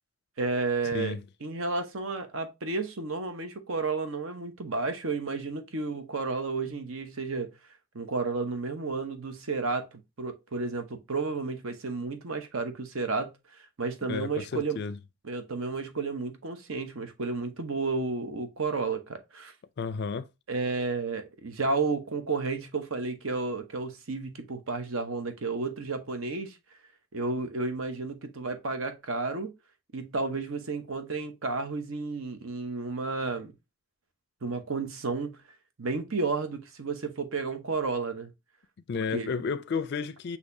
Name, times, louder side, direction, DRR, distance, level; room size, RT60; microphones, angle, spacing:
voice 1, 0.4-1.2 1.4-7.5 7.9-9.9 10.2-13.3 13.8-14.8 15.2-19.5 20.5-26.6 27.1-29.5 29.9-33.5 34.4-35.4 35.8-38.3 39.1-39.3, right 3 dB, 70° right, 0.9 m, -32 dB
voice 2, 14.1-15.0 19.8-20.3 38.9-40.4, left 5 dB, 50° left, 0.4 m, -32 dB
6.4 x 2.9 x 2.6 m
head